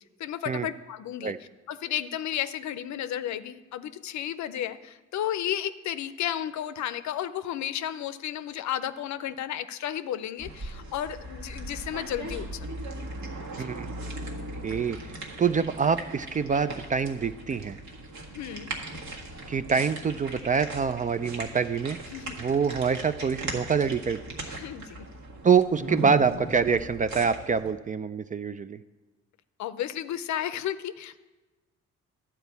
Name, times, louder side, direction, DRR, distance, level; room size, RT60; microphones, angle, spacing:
voice 1, 0.2-1.3 1.7-12.7 13.6-13.7 18.3-18.7 22.1-22.4 24.4-25.1 29.6-31.2, left 11 dB, 65° left, 13 dB, 0.6 m, -33 dB
sound 1, 10.4-27.7, right 2 dB, 65° right, 1.7 m, -38 dB
voice 2, 14.6-15.0 15.4-17.8 19.5-22.0 22.4-24.4 25.4-28.8, right 6 dB, 25° right, 13 dB, 0.4 m, -25 dB
11.0 x 4.5 x 8.2 m, 1.2 s
cardioid pair, 90°, 30 cm